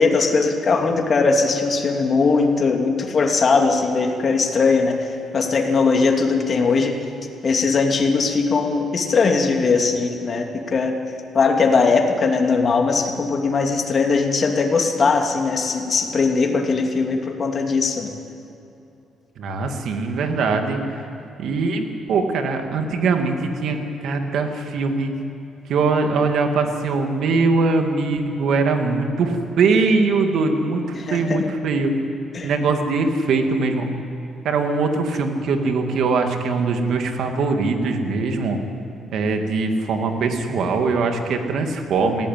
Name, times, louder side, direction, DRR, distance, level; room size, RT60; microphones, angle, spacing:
voice 1, 0.0-5.1 5.3-7.0 7.4-11.0 11.3-18.1 30.9-31.4 32.3-32.5, left 4 dB, 45° left, 2 dB, 2.7 m, -19 dB
voice 2, 19.4-20.8 21.4-23.8 24.0-25.1 25.7-30.8 31.1-31.9 32.4-33.9 34.4-38.6 39.1-42.3, right 4 dB, 75° right, 5 dB, 2.3 m, -21 dB
19.0 x 16.0 x 9.2 m, 2.8 s
cardioid pair, 90°, 0 cm